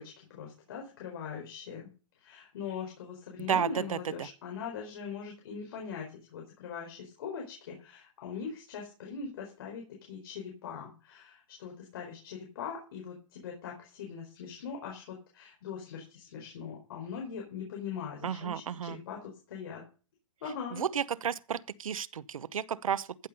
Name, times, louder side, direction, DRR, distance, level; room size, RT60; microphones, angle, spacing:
voice 1, 0.0-1.9 2.2-19.8 20.4-20.8, left 6 dB, 45° left, 4.4 m, -41 dB
voice 2, 3.4-4.3 18.2-19.0 20.7-23.1, right 8 dB, 85° right, 0.9 m, -32 dB
14.5 x 7.0 x 5.5 m
hypercardioid pair, 170°, 17 cm